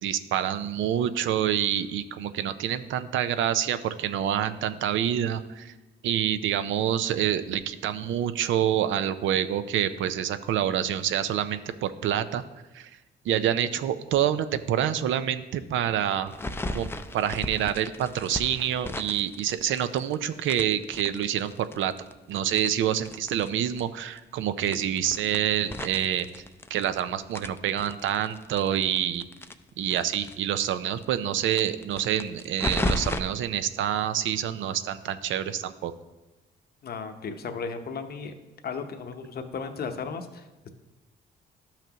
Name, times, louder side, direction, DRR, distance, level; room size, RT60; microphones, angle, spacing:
voice 1, 0.0-5.7 6.0-12.4 12.7-12.9 13.2-16.4 16.7-16.9 17.1-21.9 22.3-26.4 26.7-29.3 29.8-35.9, right 10 dB, 75° right, 12 dB, 0.5 m, -27 dB
sound 1, 16.3-20.1 20.5-23.5 23.8-23.9 24.1-24.2 24.6-27.0 27.3-30.3 30.6-30.7 31.0-31.1 31.5-33.2, left 2 dB, 10° left, 0.5 m, -34 dB
voice 2, 36.8-38.4 38.6-40.7, left 5 dB, 50° left, 6 dB, 0.8 m, -35 dB
12.0 x 5.8 x 2.9 m, 1.1 s
cardioid pair, 90°, 20 cm